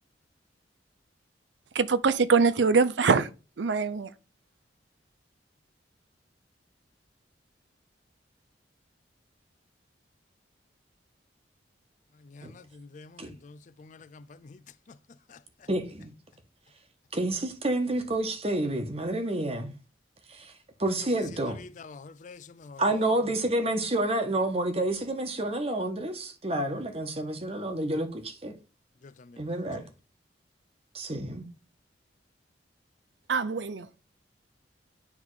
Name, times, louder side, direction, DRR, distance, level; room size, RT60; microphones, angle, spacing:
voice 1, 1.7-3.3 3.6-4.1 33.3-33.9, right 5 dB, 80° right, 0.5 m, -23 dB
voice 2, 12.1-15.7 21.4-23.1 29.0-29.4 29.8-29.9, left 4 dB, 45° left, 0.4 m, -49 dB
voice 3, 15.7-16.1 17.1-19.7 20.3-20.5 20.8-21.6 22.8-28.5 29.4-29.8 30.9-31.5, right 1 dB, 35° right, 1.2 m, -29 dB
9.7 x 3.6 x 4.8 m
head